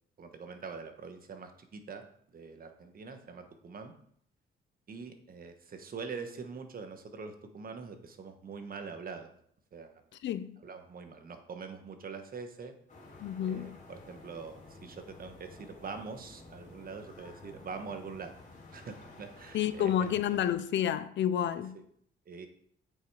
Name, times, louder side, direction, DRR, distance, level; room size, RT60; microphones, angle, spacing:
voice 1, 0.2-2.0 2.3-3.9 4.9-9.3 9.7-10.0 10.6-12.7 13.4-18.3 18.7-20.1 21.7-21.8 22.3-22.5, right 5 dB, 45° right, 1.3 m, -44 dB
voice 2, 10.2-10.6 13.2-13.8 19.5-21.8, left 10 dB, 65° left, 0.6 m, -30 dB
sound 1, 12.9-20.5, left 3 dB, 40° left, 2.9 m, -52 dB
8.1 x 5.6 x 4.8 m
cardioid pair, 90°, 20 cm